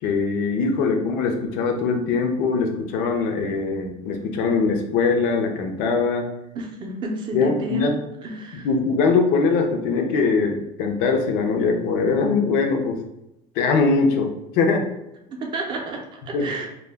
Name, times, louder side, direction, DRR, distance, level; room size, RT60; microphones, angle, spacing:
voice 1, 0.0-6.3 7.3-8.0 8.6-13.0 13.6-14.9 16.3-16.5, left 4 dB, 75° left, 4 dB, 0.5 m, -22 dB
voice 2, 6.5-7.9 8.2-8.7 15.3-16.7, right 2 dB, 35° right, 0 dB, 0.5 m, -31 dB
2.2 x 2.1 x 3.3 m, 0.87 s
cardioid pair, 145°, 15 cm